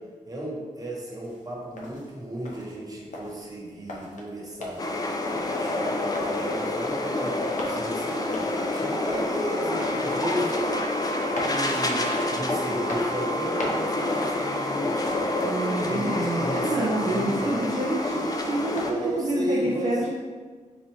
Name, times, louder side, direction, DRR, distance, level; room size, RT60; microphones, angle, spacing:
voice 1, 0.3-4.8 5.6-10.6 11.3-15.4 15.9-17.8 18.9-20.1, right 1 dB, 25° right, -3 dB, 0.9 m, -34 dB
sound 1, 1.2-19.3, left 2 dB, 70° left, 0.7 m, -42 dB
sound 2, 4.8-18.9, left 2 dB, 30° left, 0.4 m, -28 dB
Explosion, 8.9-9.8 10.1-10.5 11.4-11.7 12.5-12.9 13.7-14.4 14.9-15.1, equal, ahead, 0.7 m, -37 dB
voice 2, 15.4-20.1, right 2 dB, 50° right, -4 dB, 0.6 m, -28 dB
3.9 x 3.0 x 3.1 m, 1.5 s
cardioid pair, 75°, 14 cm